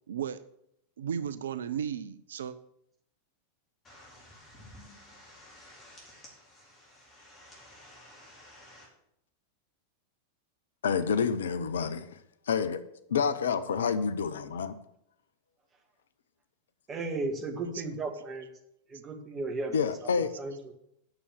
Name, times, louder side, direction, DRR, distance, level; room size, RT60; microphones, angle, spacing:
voice 1, 0.1-0.4 1.0-2.6 17.7-17.8 18.1-18.2 20.3-20.4, right 8 dB, 65° right, 0.5 m, -35 dB
sound 1, 3.8-8.9, left 1 dB, 25° left, 4.1 m, -53 dB
voice 2, 10.8-12.2 12.5-12.8 13.1-14.8 19.7-20.3, left 6 dB, 65° left, 0.7 m, -28 dB
voice 3, 16.9-18.5 18.9-20.1 20.4-20.7, right 3 dB, 25° right, 1.9 m, -35 dB
9.0 x 7.0 x 6.7 m
figure-of-eight pair, 90°, 0 cm